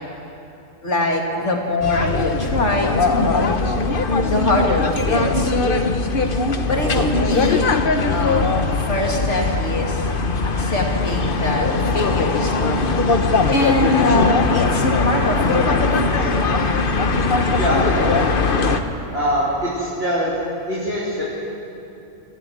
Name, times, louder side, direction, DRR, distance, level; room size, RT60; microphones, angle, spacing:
voice 1, 0.8-3.6 4.3-5.5 6.7-7.7 8.0-8.5 8.9-10.0 10.4-11.7 11.9-13.0 13.5-16.4, left 2 dB, 65° left, 1 dB, 2.9 m, -23 dB
sound 1, 1.8-18.8, left 3 dB, 45° left, 1.2 m, -20 dB
voice 2, 17.6-18.2 19.1-20.3 20.7-21.2, equal, 45° right, -9 dB, 3.6 m, -23 dB
24.5 x 14.5 x 9.3 m, 2.8 s
omnidirectional pair, 1.4 m